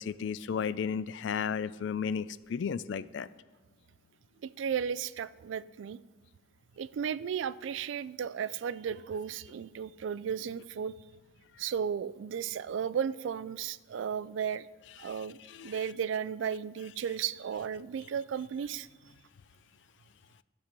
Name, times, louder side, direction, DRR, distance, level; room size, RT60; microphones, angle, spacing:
voice 1, 0.0-3.3 15.0-15.1 15.5-15.8, left 6 dB, 65° left, 18 dB, 0.3 m, -34 dB
voice 2, 4.4-6.0 6.8-10.9 11.6-14.7 15.0-18.9, right 7 dB, 75° right, 18 dB, 0.3 m, -34 dB
12.5 x 5.2 x 6.0 m, 1.3 s
head